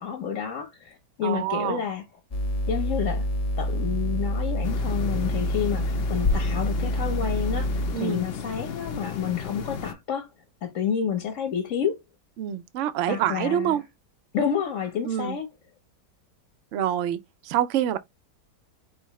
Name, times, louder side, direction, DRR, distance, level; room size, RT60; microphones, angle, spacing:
voice 1, 0.0-2.0 2.7-3.3 3.6-10.3 10.6-12.0 13.1-13.8 14.3-15.4, left 7 dB, 55° left, 1.2 m, -29 dB
voice 2, 1.2-1.8 7.9-8.2 12.4-13.8 15.0-15.4 16.7-18.0, right 11 dB, 70° right, 0.7 m, -26 dB
sound 1, 2.3-7.9, equal, 30° left, 0.7 m, -27 dB
sound 2, 4.6-9.9, left 5 dB, 70° left, 0.5 m, -33 dB
4.6 x 3.4 x 3.0 m
omnidirectional pair, 1.8 m